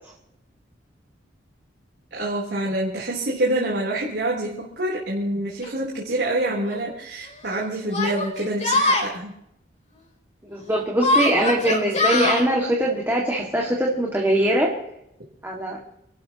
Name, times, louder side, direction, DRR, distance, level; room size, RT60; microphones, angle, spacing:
voice 1, 2.1-9.3, right 1 dB, 65° right, -4 dB, 3.6 m, -26 dB
Yell, 5.6-5.7 6.7-6.8 7.9-9.1 11.0-12.4, left 2 dB, 35° left, 3.7 m, -22 dB
voice 2, 10.5-14.7 15.4-15.8, right 1 dB, 10° right, -2 dB, 2.1 m, -22 dB
28.0 x 12.5 x 3.0 m, 0.80 s
head